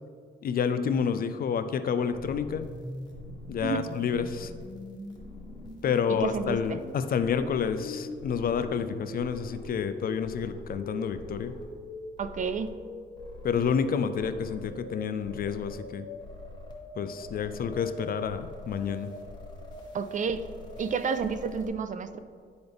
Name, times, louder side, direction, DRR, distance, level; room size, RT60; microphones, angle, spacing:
voice 1, 0.4-2.7 3.5-4.5 5.8-11.5 13.4-16.1 17.0-19.1, left 7 dB, 50° left, 10 dB, 0.4 m, -29 dB
sound 1, 2.1-21.7, left 1 dB, 20° left, 1.5 m, -43 dB
voice 2, 6.2-6.8 12.2-12.7 19.9-20.4 20.8-22.2, right 5 dB, 40° right, 11 dB, 0.4 m, -30 dB
10.5 x 3.9 x 3.4 m, 2.1 s
cardioid pair, 90°, 20 cm